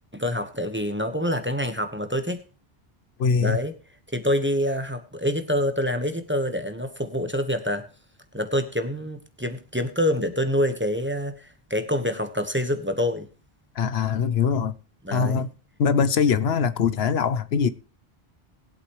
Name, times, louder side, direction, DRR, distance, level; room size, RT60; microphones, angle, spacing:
voice 1, 0.1-2.4 3.4-3.7 4.1-7.9 8.3-13.3 15.0-15.5, equal, 10° right, 1.2 m, -26 dB
voice 2, 3.2-3.6 13.7-14.7 15.1-15.5 15.8-17.7, left 6 dB, 75° left, 1.0 m, -22 dB
20.0 x 8.2 x 3.1 m
omnidirectional pair, 1.1 m